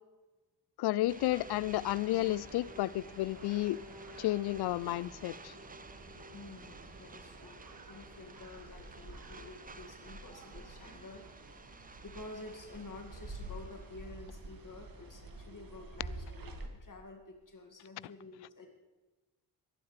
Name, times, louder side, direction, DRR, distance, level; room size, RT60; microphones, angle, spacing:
voice 1, 0.8-3.8 4.2-5.5, left 16 dB, 60° left, 22 dB, 0.5 m, -32 dB
sound 1, 1.0-16.7, right 2 dB, 45° right, 2.1 m, -50 dB
sound 2, 1.1-14.1, right 4 dB, 20° right, 0.8 m, -54 dB
sound 3, 1.3-8.5, left 1 dB, 65° right, 5.4 m, -54 dB
voice 2, 6.3-11.3 12.0-18.8, left 3 dB, 40° left, 2 dB, 2.3 m, -50 dB
21.5 x 11.5 x 3.4 m, 1.2 s
hypercardioid pair, 40°, 47 cm